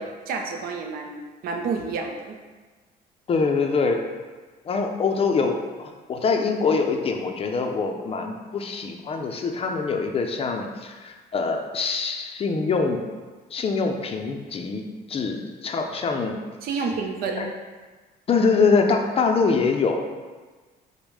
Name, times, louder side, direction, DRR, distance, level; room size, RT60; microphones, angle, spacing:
voice 1, 0.0-2.4 16.6-17.5, right 4 dB, 60° right, 3 dB, 0.6 m, -29 dB
voice 2, 3.3-4.0 4.6-13.0 13.5-14.8 15.1-16.4 17.4-17.5 18.3-20.3, left 4 dB, 35° left, 4 dB, 0.5 m, -24 dB
5.2 x 2.1 x 4.7 m, 1.4 s
cardioid pair, 110°, 17 cm